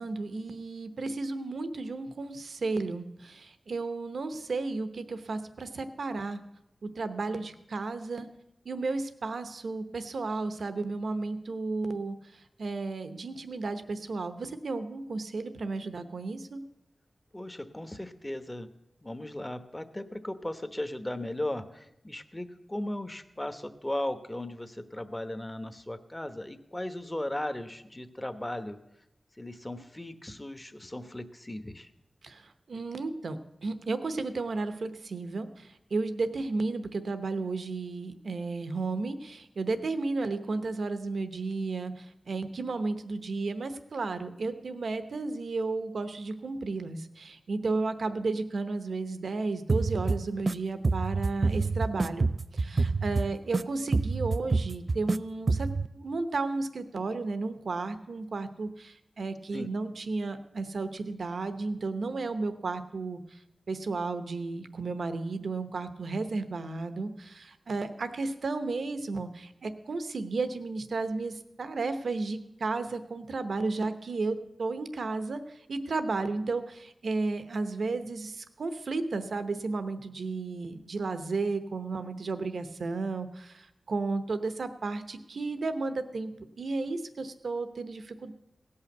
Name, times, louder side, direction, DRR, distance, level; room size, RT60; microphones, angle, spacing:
voice 1, 0.0-6.4 6.8-8.3 8.6-16.6 32.2-63.4 63.7-88.3, right 3 dB, 80° right, 10 dB, 0.9 m, -33 dB
voice 2, 17.3-18.7 19.0-28.8 29.4-31.9 59.5-59.7, left 1 dB, 20° left, 9 dB, 1.0 m, -37 dB
sound 1, 49.7-50.5 50.8-53.6 53.9-55.2 55.5-55.9, right 3 dB, 50° right, 0.3 m, -27 dB
17.0 x 5.7 x 7.9 m, 0.85 s
cardioid pair, 60°, 0 cm